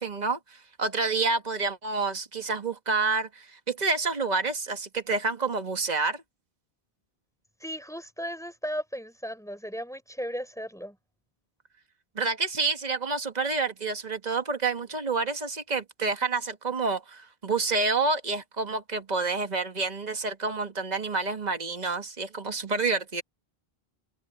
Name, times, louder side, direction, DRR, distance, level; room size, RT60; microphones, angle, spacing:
voice 1, 0.0-6.2 12.2-23.2, right 4 dB, 45° right, 1.8 m, -28 dB
voice 2, 7.6-11.0, equal, 5° left, 4.0 m, -36 dB
open air
omnidirectional pair, 1.1 m